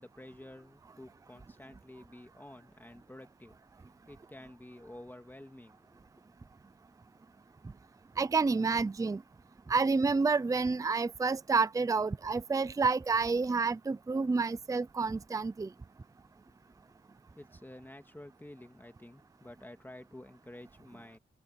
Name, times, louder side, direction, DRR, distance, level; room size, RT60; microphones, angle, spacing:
voice 1, 0.0-3.6 4.1-6.0 16.4-17.0 17.3-21.2, left 1 dB, 10° left, 1.9 m, -51 dB
voice 2, 8.2-9.2 9.7-15.7, right 4 dB, 20° right, 0.5 m, -29 dB
wide cardioid pair, 145°, 18 cm